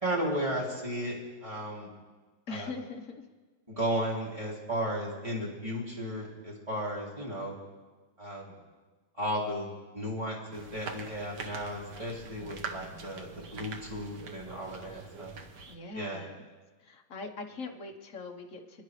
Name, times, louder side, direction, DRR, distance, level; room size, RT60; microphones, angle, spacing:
voice 1, 0.0-1.2 1.4-1.9 2.5-2.7 3.7-7.6 8.2-8.5 9.2-15.4 15.9-16.2, equal, 20° right, -5 dB, 3.2 m, -34 dB
voice 2, 2.5-3.2 12.4-12.9 15.7-16.5 16.8-18.8, left 3 dB, 50° left, 3 dB, 1.6 m, -42 dB
sound 1, 10.5-15.8, right 5 dB, 70° right, 1.7 m, -44 dB
30.0 x 10.5 x 3.3 m, 1.3 s
omnidirectional pair, 1.9 m